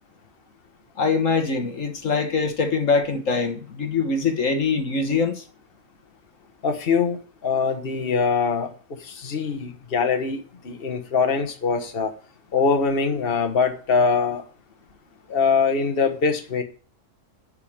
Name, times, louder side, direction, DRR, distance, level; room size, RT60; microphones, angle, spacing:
voice 1, 1.0-5.4, left 4 dB, 70° left, 1.8 m, -23 dB
voice 2, 6.6-8.7 9.0-12.1 12.5-14.4 15.3-16.6, left 5 dB, 45° left, 1.6 m, -23 dB
11.0 x 5.7 x 8.8 m
omnidirectional pair, 1.4 m